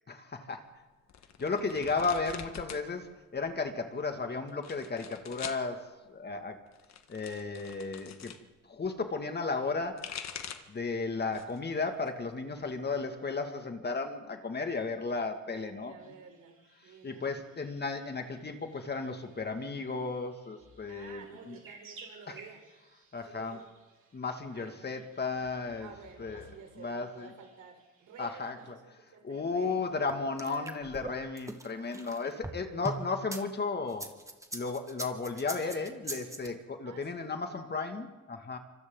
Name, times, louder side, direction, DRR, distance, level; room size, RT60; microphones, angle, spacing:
voice 1, 0.1-0.6 1.4-6.6 7.1-8.3 8.6-10.1 10.7-16.1 17.0-21.6 22.3-22.4 23.1-23.6 24.1-25.9 26.2-26.4 26.8-27.3 28.2-28.8 29.2-34.1 34.5-38.6, left 4 dB, 35° left, 5 dB, 2.3 m, -34 dB
sound 1, 1.1-2.9 3.2-3.8 4.5-5.6 6.7-8.4 9.7-10.8 11.2-11.7 12.1-13.0, left 8 dB, 60° left, 1.6 m, -45 dB
voice 2, 1.4-1.9 15.5-17.3 20.9-22.6 23.3-23.6 24.5-25.0 25.8-29.9 30.4-30.8 32.5-33.0 36.8-37.4, right 6 dB, 75° right, 3 dB, 4.3 m, -52 dB
sound 2, 16.0-28.7, right 4 dB, 45° right, 7.4 m, -59 dB
sound 3, 30.1-33.4 33.9-36.5, right 2 dB, 10° right, 1.8 m, -40 dB
26.5 x 25.0 x 4.0 m, 1.2 s
cardioid pair, 90°, 30 cm